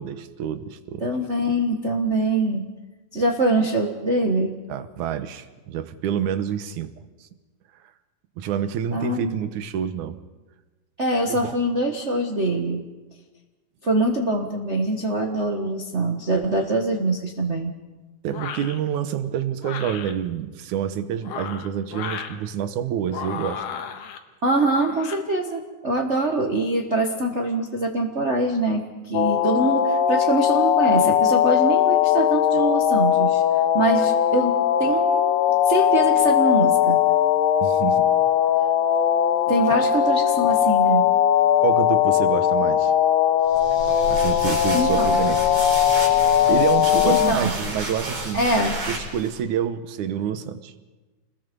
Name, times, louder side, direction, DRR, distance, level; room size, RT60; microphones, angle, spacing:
voice 1, 0.0-1.0 4.7-6.9 8.4-10.2 11.3-11.5 18.2-23.6 37.6-38.1 41.6-42.9 44.1-45.9 46.5-48.4 48.9-50.7, right 9 dB, 70° right, 11 dB, 2.4 m, -28 dB
voice 2, 1.0-2.7 3.1-4.5 8.9-9.4 11.0-12.8 13.8-17.7 24.4-33.4 33.7-35.1 35.6-37.0 39.5-41.1 43.9-44.0 44.7-45.2 46.5-46.6 47.0-47.5 48.3-48.8, right 2 dB, 50° right, 1 dB, 0.8 m, -24 dB
sound 1, 18.3-18.8 19.6-20.1 21.1-22.4 23.1-24.2 24.7-25.2, left 7 dB, 75° left, 2.9 m, -34 dB
sound 2, 29.1-47.3, left 9 dB, 90° left, 2.7 m, -19 dB
sound 3, 43.5-49.4, right 1 dB, 90° right, 6.8 m, -31 dB
29.5 x 21.0 x 5.3 m, 1.2 s
omnidirectional pair, 3.9 m